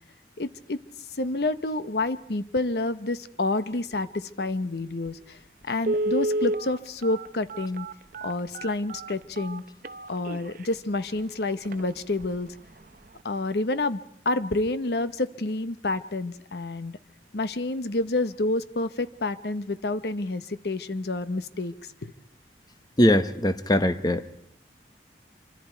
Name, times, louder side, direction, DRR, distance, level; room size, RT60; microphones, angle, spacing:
voice 1, 0.4-0.8 1.1-7.9 8.2-9.6 10.1-12.5 13.2-14.0 14.2-17.0 17.3-21.7 22.0-22.1, left 2 dB, 65° left, 13 dB, 0.8 m, -29 dB
Telephone, 5.1-5.2 5.8-10.7 11.2-11.3 11.6-11.8 12.2-12.5 12.8-12.9, right 1 dB, 50° right, 0.7 m, -30 dB
voice 2, 23.0-24.4, left 1 dB, 25° left, 10 dB, 1.0 m, -21 dB
27.0 x 24.5 x 4.5 m, 0.72 s
head